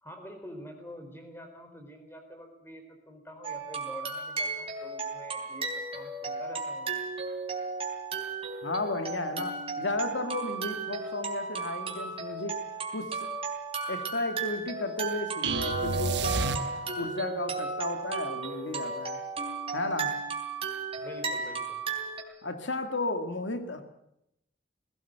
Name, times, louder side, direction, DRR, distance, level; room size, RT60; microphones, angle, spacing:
voice 1, 0.0-7.0 21.0-21.8, equal, 10° left, 5 dB, 4.2 m, -46 dB
sound 1, 3.4-22.2, right 4 dB, 30° right, 3.5 m, -35 dB
voice 2, 8.6-12.6 12.9-13.3 13.9-16.6 16.9-19.2 19.7-20.2 22.4-23.8, left 2 dB, 80° left, 7 dB, 1.9 m, -34 dB
sound 2, 15.4-17.2, right 3 dB, 65° right, 1.3 m, -29 dB
20.0 x 17.5 x 8.0 m, 0.80 s
head